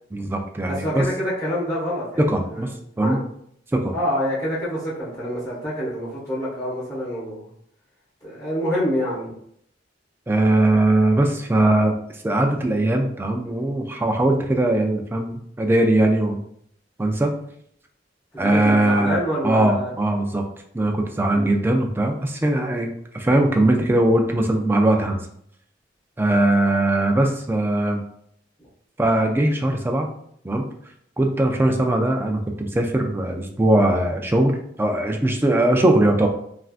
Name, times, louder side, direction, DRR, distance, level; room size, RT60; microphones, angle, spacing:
voice 1, 0.1-1.1 2.2-3.2 3.7-3.9 10.3-11.9 12.2-16.4 17.0-17.3 18.4-20.4 20.7-25.2 26.2-28.0 29.0-30.1 30.4-30.7 31.2-36.3, right 1 dB, 10° right, 2 dB, 0.3 m, -20 dB
voice 2, 0.6-2.7 3.0-3.2 3.9-7.5 8.2-9.3 18.3-19.9 21.3-21.5, equal, 20° left, -8 dB, 1.3 m, -26 dB
3.3 x 2.5 x 2.4 m, 0.68 s
head